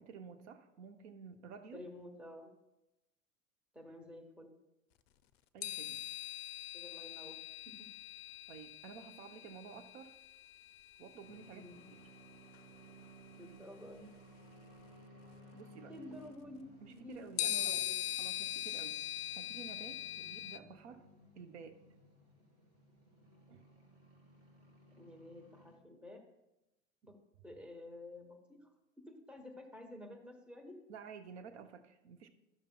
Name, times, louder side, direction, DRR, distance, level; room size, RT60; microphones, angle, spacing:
voice 1, 0.0-1.8 5.5-6.0 8.5-10.1 11.0-12.0 15.5-15.9 16.8-17.9 18.2-19.0 19.3-21.1 21.4-21.8 23.5-23.6 30.9-32.3, right 6 dB, 60° right, 8 dB, 0.7 m, -52 dB
voice 2, 1.7-2.5 3.7-4.5 6.7-7.4 7.6-7.9 11.5-11.7 13.4-14.1 15.9-18.0 25.0-26.2 27.0-27.2 27.4-28.7 29.0-30.8, left 1 dB, 5° right, 3 dB, 0.9 m, -51 dB
sound 1, 5.6-11.2 12.5-12.6 17.4-20.6, left 12 dB, 50° left, 0.5 m, -41 dB
sound 2, 11.2-25.8, right 1 dB, 35° right, 2.7 m, -59 dB
12.0 x 6.6 x 2.2 m, 0.96 s
figure-of-eight pair, 85°, 39 cm